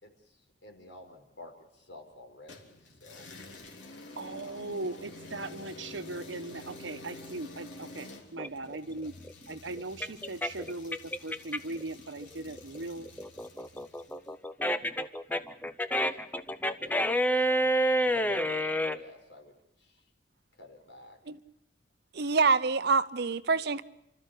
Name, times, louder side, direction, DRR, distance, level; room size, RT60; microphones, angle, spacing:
voice 1, 0.0-3.3 4.3-4.6 14.2-14.3 16.1-16.2 16.6-16.9 17.3-17.7 18.0-20.0 20.6-21.2, left 2 dB, 70° left, 4.7 m, -49 dB
sound 1, 2.5-14.3, left 2 dB, 90° left, 3.4 m, -49 dB
voice 2, 4.2-9.1 9.5-13.1, right 2 dB, 85° right, 1.2 m, -39 dB
sound 2, 8.4-11.8 12.2-19.0, equal, 10° left, 0.8 m, -29 dB
voice 3, 22.1-23.8, right 4 dB, 60° right, 0.9 m, -26 dB
30.0 x 13.5 x 8.5 m
head